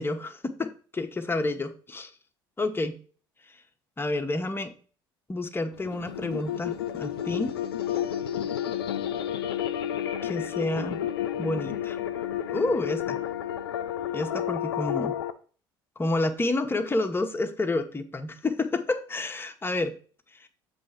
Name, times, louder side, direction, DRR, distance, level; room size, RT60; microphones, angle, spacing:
voice 1, 0.0-2.1 2.6-3.0 4.0-4.7 5.3-7.5 10.2-11.0 11.4-12.0 12.5-13.2 14.1-15.2 16.0-19.9 20.4-20.5, left 2 dB, 20° left, 6 dB, 1.0 m, -29 dB
sound 1, 5.7-15.3, left 10 dB, 85° left, 0.5 m, -31 dB
7.5 x 3.3 x 5.7 m, 0.41 s
hypercardioid pair, 65°, 12 cm